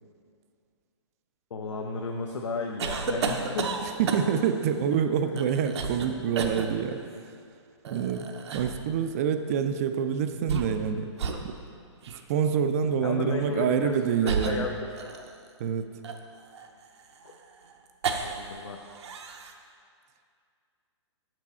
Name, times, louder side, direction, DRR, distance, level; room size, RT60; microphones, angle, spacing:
voice 1, 1.5-3.7 13.0-14.7 17.2-17.3 18.2-18.8, left 4 dB, 80° left, 1 dB, 0.7 m, -33 dB
sound 1, 2.8-4.5 5.4-6.1 6.3-6.7 7.8-8.8 10.3-10.9 11.2-11.4 12.0-12.2 13.3-13.5 14.3-15.5 16.0-18.6 18.8-19.5, right 5 dB, 65° right, 0.7 m, -32 dB
voice 2, 4.0-7.0 7.9-8.3 8.5-11.1 11.4-11.6 12.3-14.7 15.6-15.9, right 7 dB, 30° right, 9 dB, 0.4 m, -26 dB
6.8 x 6.1 x 4.2 m, 2.3 s
hypercardioid pair, 150°, 15 cm